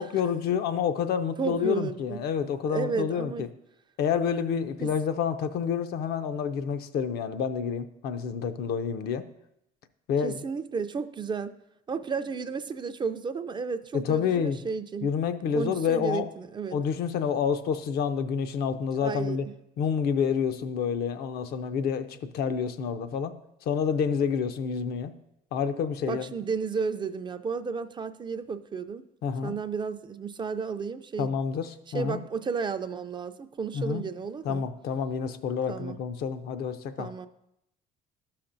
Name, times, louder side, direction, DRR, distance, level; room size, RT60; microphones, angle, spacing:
voice 1, 0.0-3.5 4.0-9.2 10.1-10.4 13.9-14.6 15.0-16.3 16.7-19.5 19.8-23.3 23.7-25.1 25.5-26.3 29.2-29.6 31.2-32.2 33.7-34.0 34.4-37.1, left 7 dB, 70° left, 10 dB, 0.5 m, -28 dB
voice 2, 1.4-2.2 2.7-3.5 4.8-4.9 10.2-11.6 11.9-15.1 15.5-16.8 19.0-19.4 26.1-29.0 29.4-31.4 31.9-34.6 35.7-36.0 37.0-37.3, right 5 dB, 30° right, 10 dB, 0.3 m, -32 dB
12.5 x 5.8 x 2.6 m, 0.82 s
cardioid pair, 110°, 17 cm